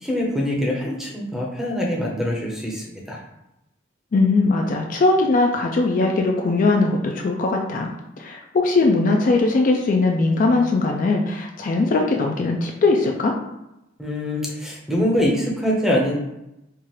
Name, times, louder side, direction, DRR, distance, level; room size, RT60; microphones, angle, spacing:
voice 1, 0.0-3.2 14.0-16.1, equal, ahead, -3 dB, 0.7 m, -24 dB
voice 2, 4.1-7.9 8.2-13.4, left 3 dB, 45° left, 2 dB, 0.3 m, -20 dB
4.5 x 2.4 x 3.0 m, 0.90 s
head